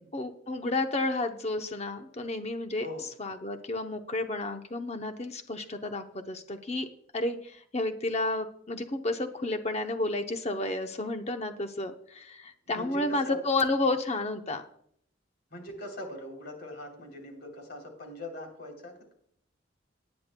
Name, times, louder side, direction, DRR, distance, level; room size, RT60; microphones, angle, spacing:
voice 1, 0.1-2.9 3.2-6.9 7.1-14.6, left 2 dB, 35° left, 6 dB, 0.7 m, -31 dB
voice 2, 12.7-13.4 15.5-19.1, left 1 dB, 55° left, 3 dB, 3.3 m, -41 dB
18.5 x 9.6 x 2.2 m, 0.66 s
head